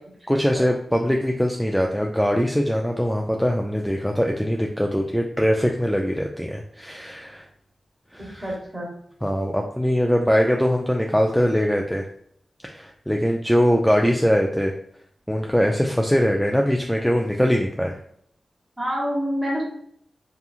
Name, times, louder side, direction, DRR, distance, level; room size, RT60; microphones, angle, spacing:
voice 1, 0.3-7.4 8.1-8.5 9.2-12.1 12.7-14.7 15.3-18.0, equal, ahead, 1 dB, 0.3 m, -22 dB
voice 2, 8.4-8.9 18.8-19.6, equal, 20° right, -2 dB, 1.1 m, -26 dB
2.9 x 2.3 x 2.4 m, 0.67 s
cardioid pair, 50°, 0 cm